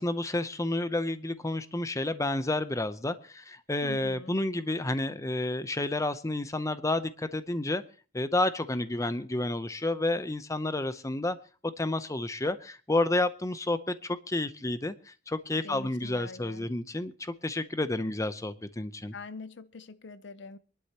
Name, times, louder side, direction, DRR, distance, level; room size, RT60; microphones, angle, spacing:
voice 1, 0.0-7.8 8.1-11.4 11.8-19.1, left 2 dB, 15° left, 0.7 m, -30 dB
voice 2, 3.8-4.4 15.6-16.7 19.1-20.6, left 3 dB, 65° left, 0.7 m, -44 dB
26.0 x 11.5 x 2.9 m
head